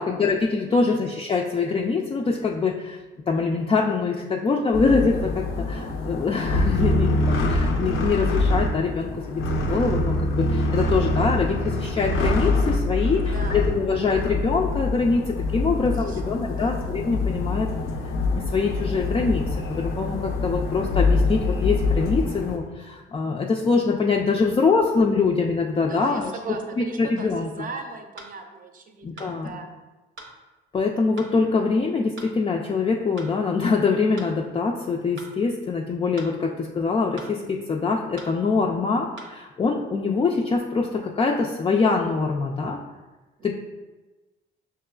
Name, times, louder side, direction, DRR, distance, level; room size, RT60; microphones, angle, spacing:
voice 1, 0.0-3.0 3.3-17.7 18.3-26.3 27.0-27.5 29.0-29.5 30.7-42.8 43.4-43.5, left 4 dB, 25° left, -1 dB, 0.4 m, -24 dB
sound 1, 4.7-22.6, left 2 dB, 90° left, 0.6 m, -25 dB
voice 2, 13.2-13.7 15.7-16.8 25.7-29.7 43.4-43.5, right 4 dB, 45° right, 5 dB, 0.6 m, -38 dB
sound 2, 27.2-27.3 28.2-28.3 29.2-29.3 30.2-30.3 31.2-31.3 32.2-32.3 33.2-33.3 34.2-34.3 35.2-35.3 36.2-36.3 37.2-37.3 38.2-38.3 39.2-39.3, right 2 dB, 85° right, 0.7 m, -42 dB
5.6 x 3.0 x 2.3 m, 1.2 s
cardioid pair, 90°, 20 cm